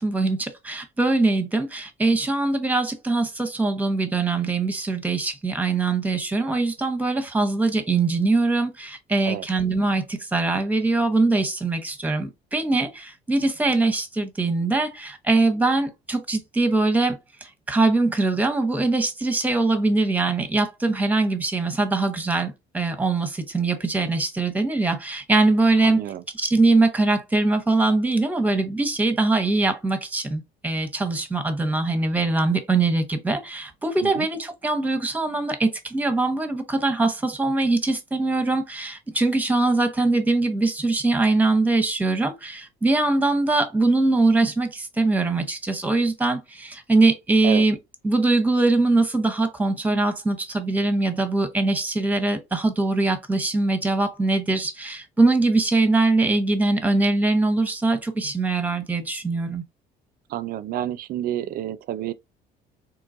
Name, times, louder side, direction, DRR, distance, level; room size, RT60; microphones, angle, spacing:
voice 1, 0.0-26.0 26.3-47.8 48.0-59.6, right 3 dB, 10° right, 0.8 m, -22 dB
voice 2, 25.8-26.2 34.0-34.3 47.4-47.7 60.3-62.1, right 11 dB, 60° right, 0.4 m, -29 dB
3.7 x 2.9 x 2.5 m
cardioid pair, 110°, 17 cm